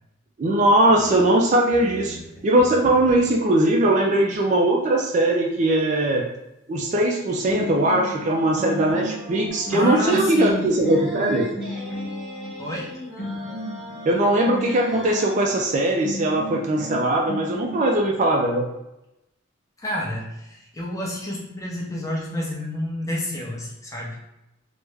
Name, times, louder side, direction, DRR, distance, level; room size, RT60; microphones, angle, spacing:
voice 1, 0.4-2.2 2.4-6.3 6.7-11.5 14.1-18.7, right 1 dB, 35° right, 0 dB, 0.3 m, -20 dB
sound 1, 0.8-3.5 7.0-7.2 7.5-12.6 13.2-15.5 16.0-17.8, left 1 dB, 55° left, 1.4 m, -35 dB
sound 2, 8.5-15.5, equal, ahead, 1.1 m, -39 dB
voice 2, 9.7-10.7 12.6-12.9 19.8-24.2, left 1 dB, 15° left, -4 dB, 0.7 m, -29 dB
3.3 x 2.1 x 3.2 m, 0.89 s
head